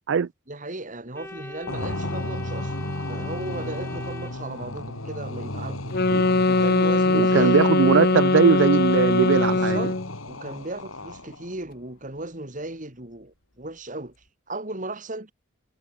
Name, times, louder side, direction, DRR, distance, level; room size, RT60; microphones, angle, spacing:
voice 1, 0.5-2.7 3.1-5.9 6.5-8.3 9.5-10.0 10.3-14.1 14.5-15.3, right 2 dB, 40° right, 2.9 m, -36 dB
Organ, 1.1-5.1, left 1 dB, 10° left, 3.5 m, -41 dB
sound 1, 1.7-11.6, left 1 dB, 90° left, 5.4 m, -35 dB
sound 2, 5.9-10.1, left 3 dB, 50° left, 1.0 m, -21 dB
voice 2, 7.1-9.8, right 6 dB, 60° right, 0.4 m, -20 dB
head